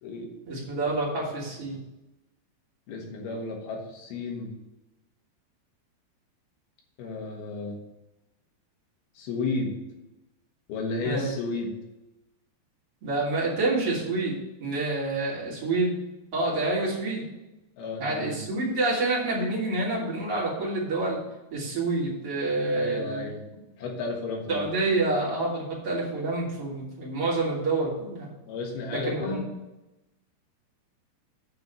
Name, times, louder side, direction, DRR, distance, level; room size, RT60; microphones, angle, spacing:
voice 1, 0.5-1.8 11.0-11.3 13.0-16.0 16.3-17.2 18.0-21.2 21.5-23.3 24.5-28.3 28.9-29.4, right 2 dB, 35° right, -6 dB, 3.3 m, -28 dB
voice 2, 2.9-4.5 7.0-7.8 9.2-9.8 10.7-11.8 17.8-18.4 22.7-23.4 23.8-24.7 28.5-29.5, left 3 dB, 70° left, 0 dB, 3.3 m, -33 dB
8.9 x 4.6 x 6.6 m, 0.98 s
omnidirectional pair, 4.8 m